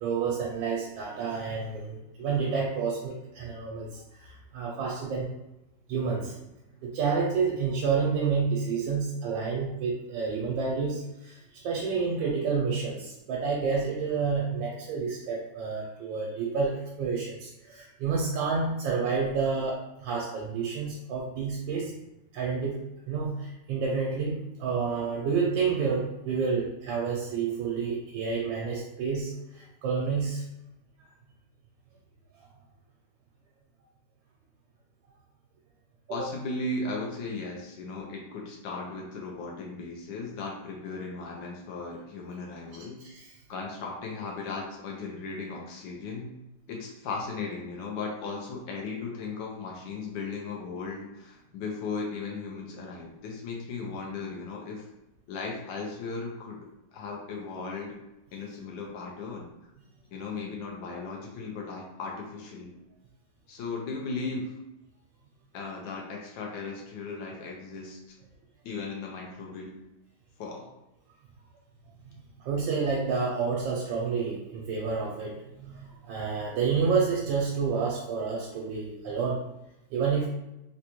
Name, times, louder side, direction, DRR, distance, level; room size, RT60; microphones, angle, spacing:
voice 1, 0.0-5.3 5.9-6.5 6.8-21.9 22.3-30.4 36.1-36.3 43.0-43.3 72.4-79.4 79.9-80.3, right 5 dB, 85° right, -2 dB, 1.3 m, -29 dB
voice 2, 36.1-43.0 43.5-46.3 46.7-54.9 55.3-58.0 58.3-59.5 60.1-62.7 63.5-64.5 65.5-68.0 68.6-69.7 70.4-70.7, left 3 dB, 85° left, -1 dB, 1.3 m, -36 dB
3.8 x 2.2 x 2.9 m, 0.91 s
omnidirectional pair, 2.0 m